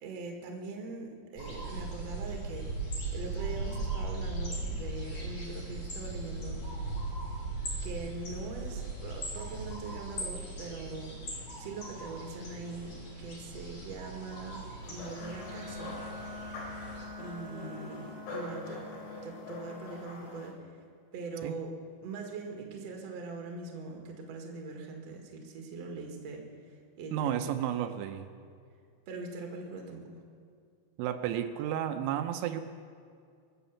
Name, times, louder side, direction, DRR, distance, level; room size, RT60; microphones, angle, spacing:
voice 1, 0.0-2.7 3.1-6.6 7.8-11.1 11.6-16.0 17.2-20.6 21.1-21.7 22.0-26.4 27.0-27.3 29.1-30.1, right 3 dB, 50° right, 2 dB, 2.2 m, -42 dB
sound 1, 1.4-17.0, right 2 dB, 35° left, 3.7 m, -38 dB
sound 2, 14.8-20.5, left 2 dB, 75° left, 5.7 m, -45 dB
Wind instrument woodwind instrument, 15.1-19.9, left 3 dB, 50° left, 5.9 m, -46 dB
voice 2, 27.1-28.3 31.0-32.6, right 10 dB, 85° right, 7 dB, 3.0 m, -32 dB
23.0 x 8.0 x 7.1 m, 2.2 s
omnidirectional pair, 5.4 m